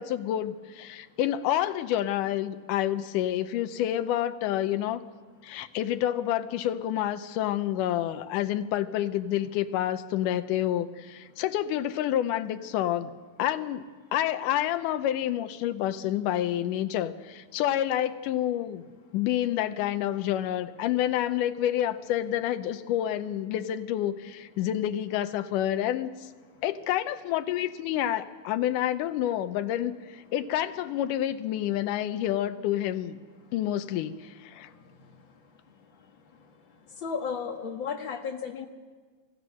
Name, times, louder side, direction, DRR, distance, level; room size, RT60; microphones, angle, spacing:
voice 1, 0.0-5.0 5.4-13.1 13.4-13.8 14.1-18.8 19.1-26.3 26.6-33.2 33.5-34.7, left 12 dB, 80° left, 10 dB, 2.3 m, -28 dB
voice 2, 37.0-38.7, left 6 dB, 45° left, 2 dB, 2.0 m, -33 dB
26.5 x 15.5 x 6.4 m, 1.5 s
omnidirectional pair, 3.8 m